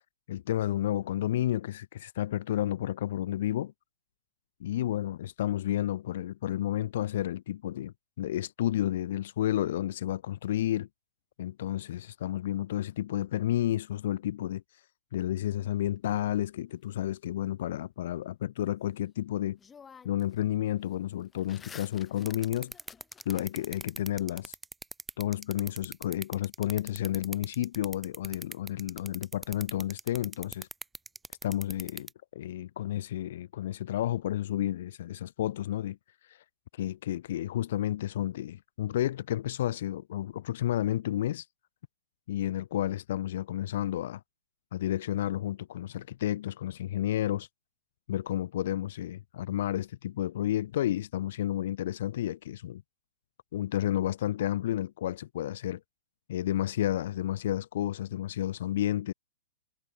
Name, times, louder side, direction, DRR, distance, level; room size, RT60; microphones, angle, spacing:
voice 1, 0.3-3.7 4.6-10.9 11.4-14.6 15.1-19.6 20.0-22.7 23.2-24.5 25.2-30.7 31.4-36.0 36.3-36.4 36.7-41.4 42.3-44.2 44.7-47.5 48.1-52.8 53.5-55.8 56.3-59.1, left 12 dB, 60° left, 1.6 m, -31 dB
sound 1, 15.6-16.8 19.1-19.2 19.6-20.4 20.7-23.8, left 6 dB, 15° left, 2.5 m, -53 dB
sound 2, 22.2-32.1, right 3 dB, 10° right, 1.0 m, -40 dB
hypercardioid pair, 110°, 0 cm